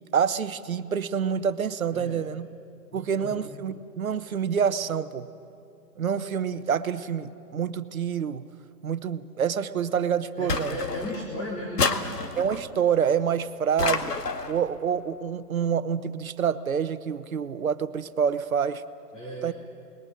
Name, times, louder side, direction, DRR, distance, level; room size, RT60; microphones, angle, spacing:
voice 1, 0.1-2.5 2.9-5.3 6.0-8.4 8.8-10.8 12.4-14.1 14.5-18.8 19.4-19.5, right 7 dB, 55° right, 12 dB, 1.1 m, -27 dB
voice 2, 1.9-2.2 2.9-3.3 10.4-12.0 19.1-19.5, left 1 dB, 15° left, -2 dB, 2.7 m, -35 dB
sound 1, 10.5-11.3 11.8-12.7 13.8-14.6, left 4 dB, 70° left, 2.0 m, -28 dB
28.5 x 21.0 x 9.2 m, 2.6 s
figure-of-eight pair, 145°, 49 cm